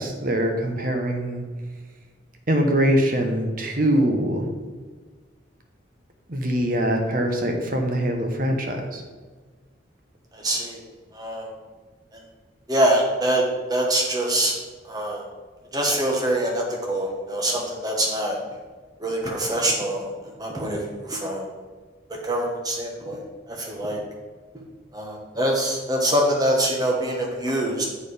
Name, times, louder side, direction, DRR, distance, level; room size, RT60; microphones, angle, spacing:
voice 1, 0.0-1.4 2.5-4.5 6.3-9.0, equal, 45° right, 3 dB, 1.0 m, -23 dB
voice 2, 10.3-10.8 11.1-11.5 12.7-13.4 13.7-14.5 14.9-15.2 15.7-18.4 19.0-20.1 20.4-21.5 22.2-23.2 23.5-24.0 24.9-27.9, right 1 dB, 20° right, 0 dB, 1.2 m, -24 dB
7.5 x 4.5 x 4.9 m, 1.4 s
head